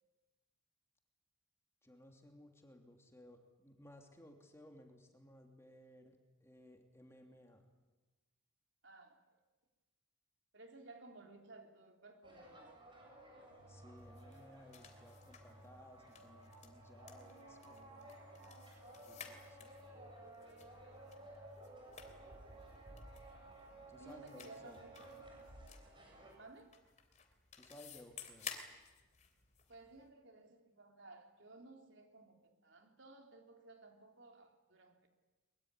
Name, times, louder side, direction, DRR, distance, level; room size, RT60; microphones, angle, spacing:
voice 1, 1.8-7.7 13.7-18.2 19.0-19.7 23.9-24.8 27.5-28.6, left 1 dB, 15° left, 3 dB, 2.9 m, -59 dB
voice 2, 8.8-9.4 10.5-12.8 24.0-25.1 26.4-26.8 29.7-35.1, right 2 dB, 60° right, 3 dB, 3.6 m, -57 dB
sound 1, 12.2-26.3, right 1 dB, 25° right, 7.8 m, -57 dB
sound 2, 13.5-22.2, right 1 dB, 90° right, 1.5 m, -60 dB
sound 3, 14.0-30.1, left 7 dB, 35° left, 3.2 m, -56 dB
23.0 x 23.0 x 9.8 m, 1.2 s
head